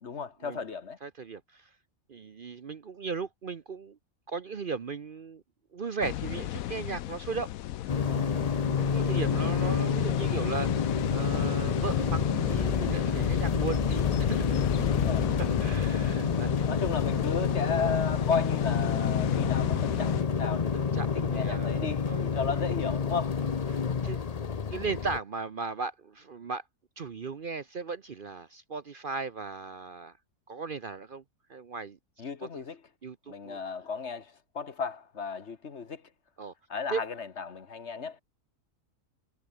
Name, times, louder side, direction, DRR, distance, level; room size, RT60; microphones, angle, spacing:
voice 1, 0.0-1.0 8.0-8.4 14.9-15.3 16.7-23.5 32.2-32.8 33.3-36.1 36.7-38.2, left 5 dB, 55° left, 1.7 m, -34 dB
voice 2, 1.0-1.7 2.1-4.0 4.3-5.4 5.7-7.5 8.5-14.6 15.6-16.7 20.7-21.7 22.1-22.2 23.4-24.2 24.4-26.6 27.0-30.1 30.5-31.2 31.5-32.0 32.4-32.6 33.0-33.6 36.4-36.5 36.9-37.0, right 4 dB, 45° right, 0.9 m, -37 dB
sound 1, 6.0-20.2, left 14 dB, 85° left, 1.1 m, -33 dB
sound 2, 7.9-25.2, left 6 dB, 35° left, 0.7 m, -28 dB
omnidirectional pair, 1.4 m